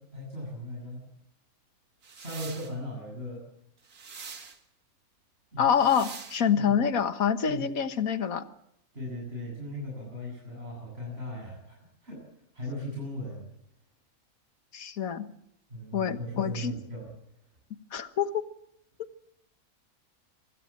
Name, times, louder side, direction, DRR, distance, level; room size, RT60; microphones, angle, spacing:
voice 1, 0.1-1.0 2.1-3.4 5.5-5.7 6.5-6.7 7.5-7.7 8.9-12.2 12.5-13.5 15.7-17.1, left 1 dB, 45° right, -3 dB, 8.3 m, -38 dB
sound 1, 2.0-2.7 3.8-4.6 5.7-6.4, right 5 dB, 85° right, 2.2 m, -44 dB
voice 2, 5.6-8.5 14.7-15.3 15.9-16.7 17.9-18.4, left 7 dB, 70° left, 10 dB, 1.7 m, -26 dB
25.5 x 16.5 x 7.4 m, 0.75 s
omnidirectional pair, 1.5 m